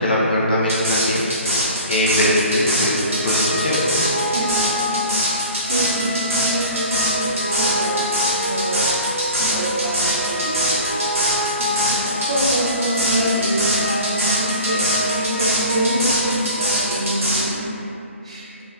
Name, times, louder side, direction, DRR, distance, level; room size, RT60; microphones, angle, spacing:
voice 1, 0.0-1.6 1.9-4.0, left 1 dB, 45° left, -6 dB, 0.5 m, -21 dB
sound 1, 0.7-17.4, equal, 85° right, 1.3 m, -22 dB
sound 2, 3.0-16.7, left 1 dB, 20° left, 0.8 m, -27 dB
voice 2, 4.3-8.1 8.3-10.7 11.6-17.7 18.2-18.5, right 1 dB, 25° right, -7 dB, 0.3 m, -26 dB
3.1 x 2.2 x 2.3 m, 2.8 s
figure-of-eight pair, 165°, 7 cm